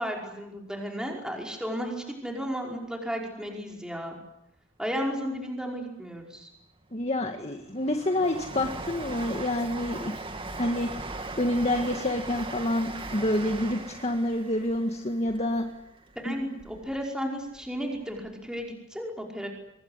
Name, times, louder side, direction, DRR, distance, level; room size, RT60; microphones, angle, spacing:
voice 1, 0.0-4.2 4.8-6.5 16.2-19.5, equal, 5° right, 0 dB, 5.3 m, -34 dB
Train, 6.8-17.0 17.4-18.3 18.6-18.7, right 2 dB, 25° right, 2.4 m, -39 dB
voice 2, 6.9-10.1 10.6-15.7 16.3-16.4, left 1 dB, 35° left, 5 dB, 1.9 m, -28 dB
25.5 x 21.5 x 9.9 m, 0.79 s
head